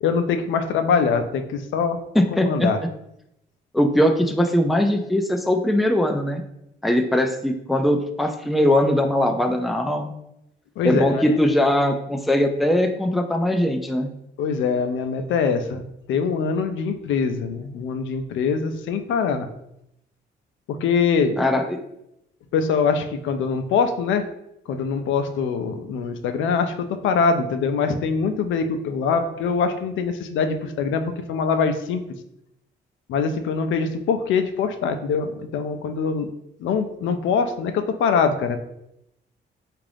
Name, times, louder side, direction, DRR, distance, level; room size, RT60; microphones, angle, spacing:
voice 1, 0.0-2.0 2.3-2.8 10.8-11.4 14.4-15.8 16.1-19.5 20.7-21.4 22.5-24.3 24.7-32.0 33.1-36.3 36.6-38.6, left 5 dB, 75° left, 8 dB, 0.4 m, -23 dB
voice 2, 2.1-2.7 3.7-6.4 6.8-10.2 10.8-14.1 21.4-21.8, left 1 dB, ahead, 5 dB, 0.3 m, -20 dB
3.6 x 2.5 x 3.3 m, 0.81 s
cardioid pair, 90°, 20 cm